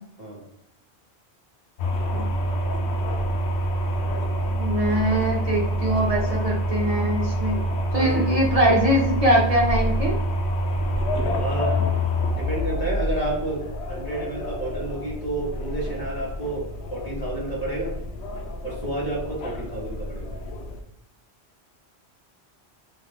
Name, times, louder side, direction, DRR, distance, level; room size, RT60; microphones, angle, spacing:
sound 1, 1.8-20.8, equal, 80° left, 0.8 m, -27 dB
voice 1, 4.5-7.6 7.9-10.1, right 1 dB, 40° right, -3 dB, 0.7 m, -22 dB
voice 2, 7.9-8.2 11.3-11.7 12.3-13.6 13.9-16.6 16.9-17.9 18.6-20.3, right 1 dB, 40° left, -5 dB, 1.1 m, -30 dB
2.7 x 2.4 x 3.4 m, 0.78 s
omnidirectional pair, 1.1 m